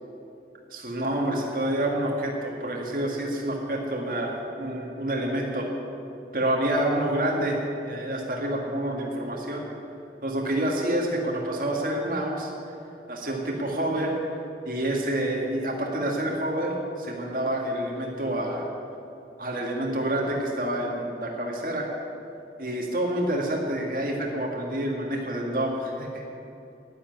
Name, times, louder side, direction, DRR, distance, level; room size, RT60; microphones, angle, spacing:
voice 1, 0.7-5.7 6.3-7.6 7.8-9.6 10.2-12.5 13.1-14.2 14.6-18.7 19.4-21.9 22.6-26.2, right 1 dB, 50° right, -1 dB, 1.9 m, -28 dB
10.5 x 10.0 x 9.6 m, 2.8 s
head